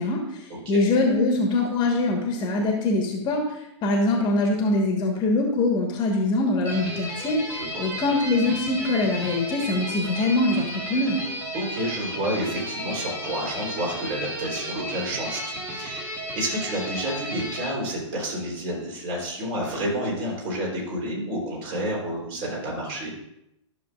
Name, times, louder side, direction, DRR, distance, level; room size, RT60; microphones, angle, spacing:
voice 1, 0.0-3.4 3.8-11.2, left 2 dB, 30° left, 1 dB, 1.4 m, -23 dB
sound 1, 6.6-17.7, equal, 15° right, 1.8 m, -33 dB
voice 2, 7.5-7.9 11.5-23.1, right 1 dB, 40° right, -2 dB, 3.6 m, -30 dB
13.0 x 6.4 x 2.5 m, 0.81 s
figure-of-eight pair, 115°, 16 cm